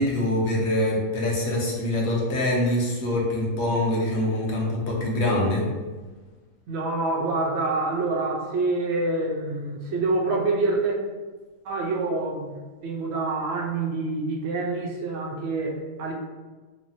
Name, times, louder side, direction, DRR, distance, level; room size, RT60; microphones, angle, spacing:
voice 1, 0.0-5.6, left 1 dB, 65° left, -3 dB, 1.0 m, -24 dB
voice 2, 6.7-11.0 11.6-16.1, right 3 dB, 70° right, -1 dB, 0.6 m, -26 dB
3.1 x 2.1 x 2.5 m, 1.3 s
omnidirectional pair, 1.7 m